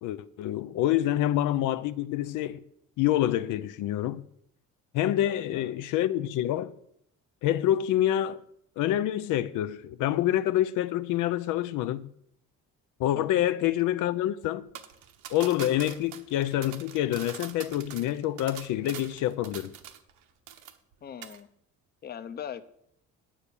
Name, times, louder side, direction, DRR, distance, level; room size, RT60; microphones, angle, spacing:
voice 1, 0.0-2.6 3.0-4.2 4.9-6.7 7.4-8.4 8.8-12.1 13.0-14.7 15.3-19.7, left 13 dB, 85° left, 0.6 m, -27 dB
voice 2, 5.2-5.7 13.1-13.6 21.0-21.5 22.0-22.6, left 8 dB, 30° left, 0.6 m, -41 dB
sound 1, 14.7-20.2 20.5-20.9 21.2-21.4, right 10 dB, 75° right, 1.1 m, -44 dB
9.9 x 7.3 x 6.9 m
cardioid pair, 160°, 30 cm